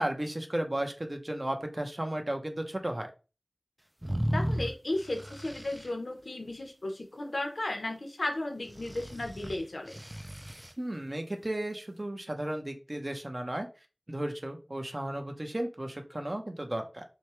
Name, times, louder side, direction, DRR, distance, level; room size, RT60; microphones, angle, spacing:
voice 1, 0.0-3.1 10.8-13.7 14.1-17.0, right 1 dB, 40° right, 4 dB, 0.9 m, -34 dB
sound 1, 4.0-5.9 8.7-10.7, equal, 15° right, 0.4 m, -35 dB
voice 2, 4.3-10.0, left 1 dB, 80° left, 5 dB, 0.9 m, -34 dB
6.2 x 2.3 x 3.1 m, 0.32 s
wide cardioid pair, 45°, 0 cm